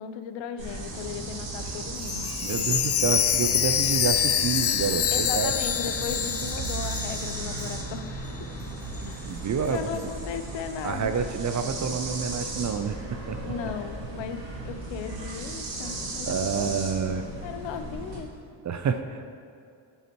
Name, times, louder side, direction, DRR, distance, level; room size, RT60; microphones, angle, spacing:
voice 1, 0.0-2.3 5.1-8.1 9.1-9.4 9.7-11.2 13.4-16.8 17.4-18.4, left 7 dB, 75° left, 9 dB, 0.7 m, -36 dB
sound 1, 0.6-18.2, right 2 dB, 85° right, 1.9 m, -36 dB
Chime, 2.0-8.0 8.3-8.4 8.9-9.0, left 8 dB, 35° left, 0.4 m, -26 dB
voice 2, 2.2-5.5 9.0-9.9 10.8-13.5 16.3-17.3 18.6-19.3, right 6 dB, 40° right, 8 dB, 0.5 m, -29 dB
10.5 x 5.6 x 3.0 m, 2.4 s
cardioid pair, 75°, 45 cm